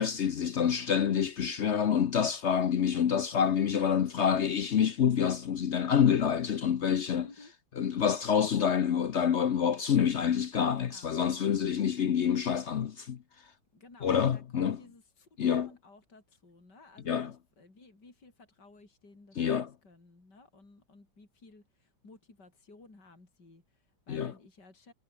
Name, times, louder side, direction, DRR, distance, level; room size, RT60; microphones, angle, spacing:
voice 1, 0.0-7.3 7.8-13.2 14.0-14.8 15.4-15.7 17.1-17.3 19.4-19.7 24.1-24.3, left 8 dB, 75° left, 0.6 m, -27 dB
voice 2, 7.2-7.5 10.7-11.1 13.7-24.9, left 3 dB, 50° left, 6.2 m, -56 dB
omnidirectional pair, 2.4 m